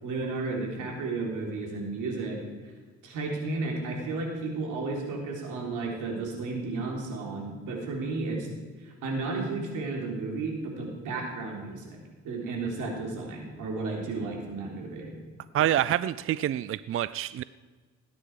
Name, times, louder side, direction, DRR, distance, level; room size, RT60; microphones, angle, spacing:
voice 1, 0.0-2.4 3.0-8.5 8.8-12.0 12.2-15.2, right 3 dB, 90° right, 0 dB, 3.7 m, -33 dB
voice 2, 15.5-17.4, right 12 dB, 45° right, 17 dB, 0.4 m, -27 dB
18.5 x 9.7 x 4.9 m, 1.4 s
cardioid pair, 90°, 30 cm